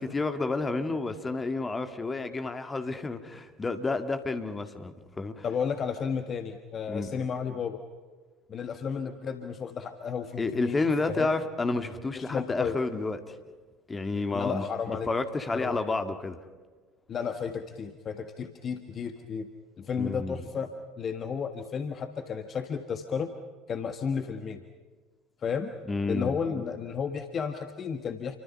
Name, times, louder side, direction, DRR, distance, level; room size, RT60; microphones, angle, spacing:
voice 1, 0.0-5.4 6.9-7.1 10.4-13.4 13.9-16.4 20.0-20.5 25.9-26.4, left 3 dB, 20° left, 8 dB, 2.2 m, -30 dB
voice 2, 5.4-7.8 8.5-10.8 11.1-11.3 12.1-12.8 14.3-15.1 15.5-15.8 17.1-19.5 19.8-20.7 21.0-23.3 23.7-24.6 25.4-25.7 26.1-28.4, left 6 dB, 35° left, 8 dB, 1.6 m, -32 dB
29.5 x 24.5 x 5.7 m, 1.4 s
figure-of-eight pair, 65°, 0 cm